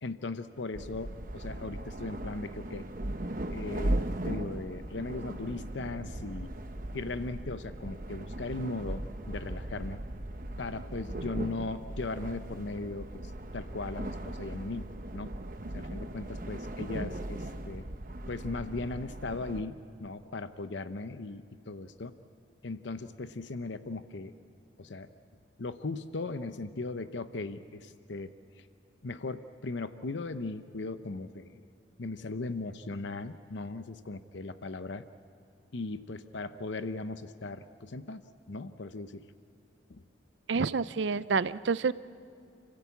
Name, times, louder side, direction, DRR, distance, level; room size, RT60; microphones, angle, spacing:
voice 1, 0.0-2.9 3.5-4.0 4.2-6.5 6.9-10.0 10.6-15.4 15.7-17.9 18.3-22.1 22.6-24.3 24.8-25.1 25.6-28.3 29.0-31.6 32.0-35.1 35.7-39.2 39.9-40.0, left 3 dB, 75° left, 11 dB, 0.7 m, -38 dB
sound 1, 0.7-19.6, right 1 dB, 45° right, 1.0 m, -38 dB
voice 2, 40.5-41.9, right 4 dB, 75° right, 16 dB, 0.5 m, -28 dB
29.0 x 15.5 x 8.4 m, 2.5 s
head